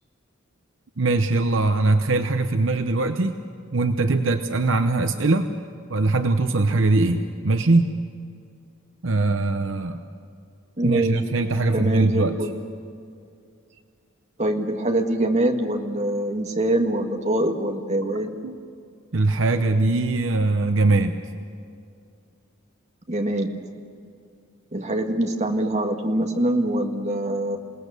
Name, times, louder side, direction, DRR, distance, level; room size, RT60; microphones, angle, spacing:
voice 1, 1.0-3.4 3.7-5.5 5.9-8.0 9.0-10.0 10.8-12.4 18.4-18.6 19.1-21.2, right 2 dB, 65° right, 7 dB, 0.8 m, -21 dB
voice 2, 10.8-11.2 11.7-12.5 14.4-18.4 23.1-23.5 24.7-27.6, right 1 dB, 35° right, 4 dB, 1.6 m, -24 dB
27.5 x 18.5 x 6.8 m, 2.3 s
head